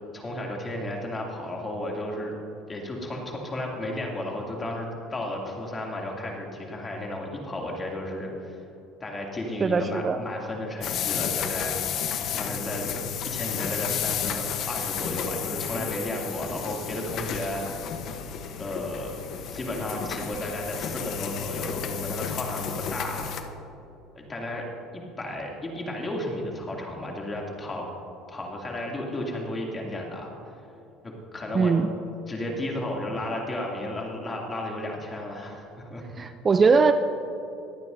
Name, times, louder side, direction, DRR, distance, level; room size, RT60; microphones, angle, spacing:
voice 1, 0.1-2.3 2.7-8.6 9.0-12.9 13.2-18.0 18.6-19.1 19.5-23.3 24.1-24.7 24.9-27.9 28.3-30.6 31.0-31.7 32.3-36.0, left 1 dB, 20° left, -1 dB, 2.6 m, -33 dB
voice 2, 9.6-10.2 31.5-31.9 36.2-36.9, right 5 dB, 30° right, 9 dB, 0.5 m, -21 dB
sound 1, 10.8-23.4, left 8 dB, 55° left, 1.0 m, -32 dB
23.0 x 9.0 x 2.7 m, 2.8 s
supercardioid pair, 100°, 0 cm